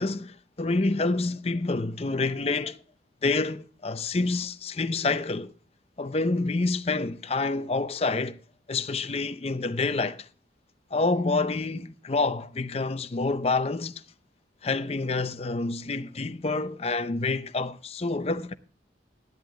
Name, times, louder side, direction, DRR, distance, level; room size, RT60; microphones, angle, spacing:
voice 1, 0.0-2.8 3.2-5.5 6.0-8.4 8.7-10.3 10.9-14.0 14.6-18.5, left 3 dB, 35° left, 0.6 m, -28 dB
13.0 x 10.5 x 3.8 m
head